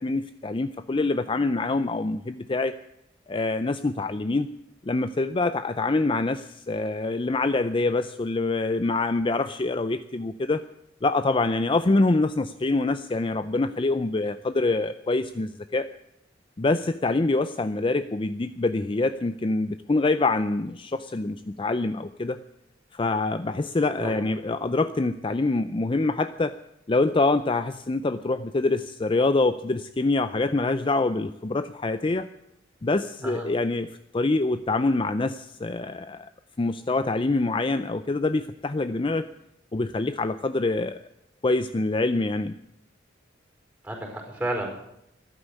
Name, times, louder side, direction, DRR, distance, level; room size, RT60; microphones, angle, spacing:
voice 1, 0.0-2.7 3.3-4.5 4.9-10.6 11.0-15.9 16.6-22.4 22.9-26.5 26.9-32.3 32.8-36.3 36.6-39.3 39.7-41.0 41.4-42.6, left 3 dB, 25° left, 11 dB, 0.5 m, -25 dB
voice 2, 43.8-44.7, right 1 dB, 10° right, 2 dB, 4.8 m, -31 dB
14.0 x 11.5 x 8.3 m, 0.79 s
head